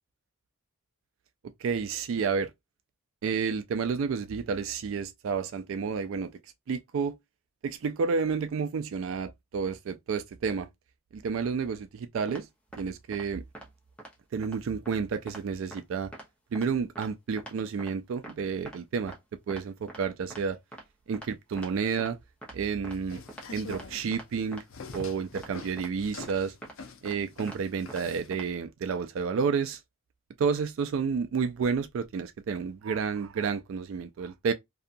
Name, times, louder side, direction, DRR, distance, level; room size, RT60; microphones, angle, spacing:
voice 1, 1.6-2.5 3.2-6.3 6.7-7.1 7.6-10.7 11.1-12.5 12.8-13.4 14.3-16.1 16.5-19.1 19.5-20.6 21.1-22.2 22.5-23.2 23.5-24.6 24.9-26.5 27.0-29.8 30.4-34.5, right 5 dB, 65° right, 0.3 m, -30 dB
sound 1, 12.3-12.4 12.7-12.8 13.1-13.2 13.6-13.7 14.0-14.1 14.4-14.6 14.9-15.0 15.3-15.4 15.7-15.8 16.1-16.3 16.6-16.7 17.0-17.1 17.4-17.5 17.8-17.9 18.2-18.3 18.7-18.8 19.1-19.2 19.5-19.6 19.9-20.0 20.3-20.4 20.7-20.8 21.1-21.3 21.6-21.7 22.0-22.1 22.4-22.6 22.8-23.0 23.3-23.4 23.7-23.9 24.1-24.3 24.5-24.6 24.9-25.0 25.4-25.5 25.8-25.9 26.2-26.3 26.6-26.7 27.1-27.2 27.5-27.6 27.9-28.0 28.3-28.5, right 1 dB, 5° left, 0.7 m, -43 dB
sound 2, 22.9-28.3, left 4 dB, 65° left, 0.6 m, -45 dB
2.7 x 2.3 x 2.5 m
head